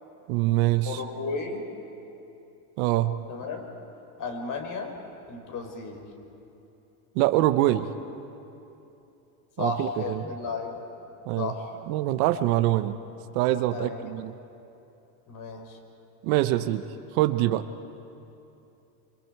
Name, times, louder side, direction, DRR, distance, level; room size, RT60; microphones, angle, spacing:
voice 1, 0.3-1.0 2.8-3.1 7.1-7.9 9.6-10.2 11.3-11.5 11.9-13.0 13.3-14.3 16.2-16.8 17.1-17.6, right 15 dB, 70° right, 10 dB, 1.1 m, -24 dB
voice 2, 0.8-1.7 3.3-3.6 4.2-5.0 5.3-6.1 9.6-10.8 11.4-11.8 13.7-14.0 15.3-15.8, left 4 dB, 45° left, 4 dB, 4.1 m, -34 dB
27.0 x 26.0 x 4.8 m, 2.9 s
supercardioid pair, 105°, 45 cm